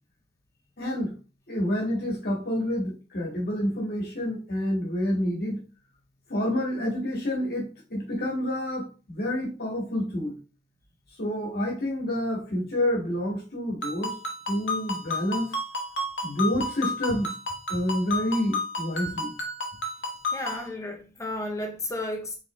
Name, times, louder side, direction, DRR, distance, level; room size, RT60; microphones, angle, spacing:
voice 1, 0.8-1.1 1.5-5.6 6.3-10.3 11.2-14.1 14.5-15.5 16.2-17.3 17.7-19.3, left 1 dB, 60° left, 1.5 m, -28 dB
Ringtone, 13.8-20.7, left 2 dB, 90° left, 1.0 m, -32 dB
voice 2, 20.3-22.4, left 1 dB, 15° left, 0.5 m, -33 dB
3.8 x 3.3 x 3.0 m
head